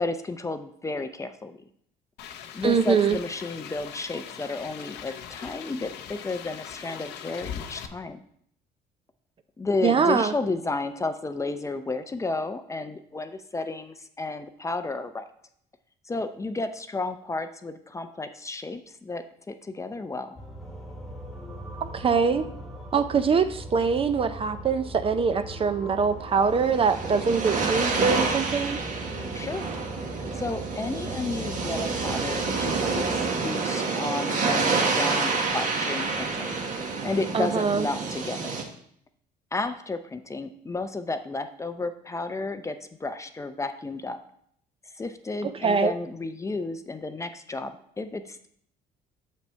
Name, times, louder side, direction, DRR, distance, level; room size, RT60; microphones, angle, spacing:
voice 1, 0.0-1.6 2.5-8.2 9.6-15.3 16.0-20.4 29.3-29.7 30.3-36.5 37.0-38.6 39.5-44.2 44.9-48.5, left 3 dB, 20° left, 9 dB, 0.5 m, -32 dB
sound 1, 2.2-7.9, left 9 dB, 85° left, 0.7 m, -40 dB
voice 2, 2.6-3.2 9.8-10.3 21.8-22.4 22.9-28.8 37.3-37.9 45.4-45.9, right 5 dB, 35° right, 11 dB, 0.5 m, -23 dB
sound 2, 20.4-33.3, equal, ahead, 1.4 m, -40 dB
sound 3, 26.4-38.6, right 4 dB, 50° right, 1.4 m, -28 dB
6.8 x 5.9 x 4.4 m, 0.66 s
cardioid pair, 110°, 17 cm